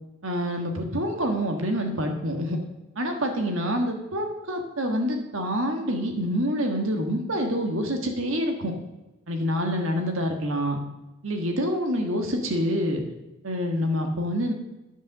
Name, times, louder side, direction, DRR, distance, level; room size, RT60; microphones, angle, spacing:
voice 1, 0.2-2.6 2.9-8.7 9.3-10.8 11.2-13.0 13.4-14.5, equal, 60° right, 4 dB, 1.4 m, -27 dB
10.0 x 5.4 x 6.5 m, 1.0 s
head